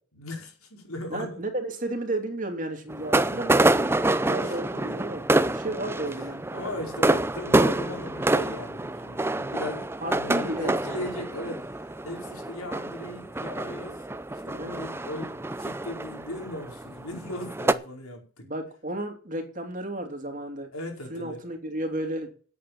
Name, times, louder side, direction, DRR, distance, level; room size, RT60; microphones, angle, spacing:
voice 1, 0.1-1.4 4.4-5.0 6.5-18.5 20.7-21.4, left 1 dB, 85° left, 2 dB, 5.0 m, -38 dB
voice 2, 1.1-3.9 4.2-6.4 10.0-10.7 14.4-14.8 18.4-20.7 21.1-22.3, right 1 dB, 35° right, 4 dB, 2.9 m, -33 dB
sound 1, 2.9-17.7, right 2 dB, 10° right, 0.5 m, -27 dB
10.0 x 8.5 x 7.3 m, 0.41 s
head